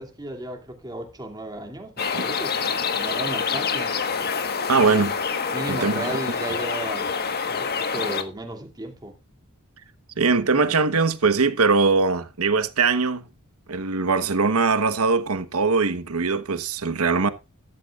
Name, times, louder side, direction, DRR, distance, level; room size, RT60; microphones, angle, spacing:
voice 1, 0.0-4.0 4.9-5.2 5.5-7.1 7.5-9.2, right 1 dB, 20° right, 2.7 m, -34 dB
sound 1, 2.0-8.2, left 5 dB, 45° left, 1.4 m, -26 dB
voice 2, 4.7-5.1 5.7-6.1 10.2-13.3 13.7-17.3, right 4 dB, 70° right, 1.1 m, -21 dB
14.5 x 12.5 x 2.4 m
head